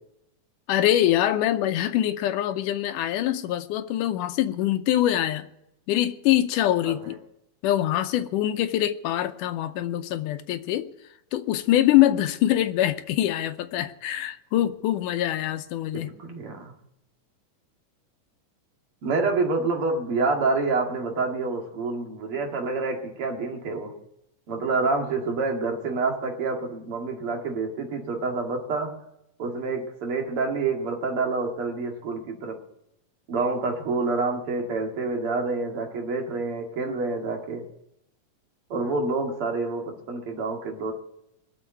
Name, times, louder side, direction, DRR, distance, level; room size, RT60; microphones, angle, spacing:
voice 1, 0.7-5.5 5.9-7.2 7.6-10.9 11.3-16.1, left 13 dB, 80° left, 10 dB, 2.2 m, -24 dB
voice 2, 15.9-16.7 19.0-23.9 24.5-29.0 29.4-32.6 33.3-37.6 38.7-40.9, right 3 dB, 45° right, 1 dB, 2.7 m, -27 dB
20.5 x 7.1 x 9.2 m, 0.83 s
omnidirectional pair, 3.8 m